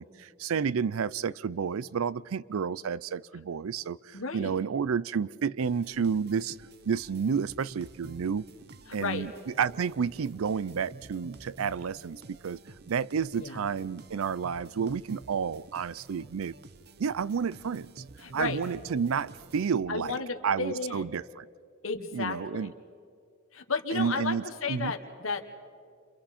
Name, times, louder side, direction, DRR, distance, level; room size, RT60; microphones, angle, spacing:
voice 1, 0.0-6.6 6.9-8.5 8.9-9.3 9.6-12.6 12.9-16.5 17.0-18.0 18.3-20.2 20.4-21.5 22.1-22.7 23.9-24.9, right 6 dB, 75° right, 20 dB, 0.5 m, -30 dB
voice 2, 4.1-4.6 8.9-9.3 13.4-13.6 18.2-18.6 19.9-21.1 21.8-22.7 23.5-25.4, left 4 dB, 65° left, 6 dB, 1.4 m, -33 dB
sound 1, 5.6-20.2, right 3 dB, 50° right, 0.8 m, -50 dB
29.0 x 28.0 x 4.3 m, 2.3 s
head